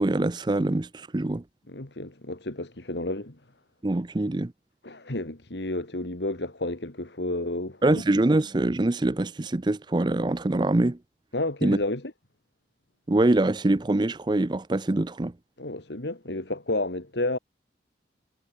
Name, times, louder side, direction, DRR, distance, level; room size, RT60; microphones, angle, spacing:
voice 1, 0.0-1.4 3.8-4.5 7.8-11.0 11.6-11.8 13.1-15.3, right 2 dB, 25° right, 0.5 m, -24 dB
voice 2, 1.7-3.4 4.8-8.0 11.3-12.0 15.6-17.4, left 2 dB, 75° left, 2.5 m, -31 dB
head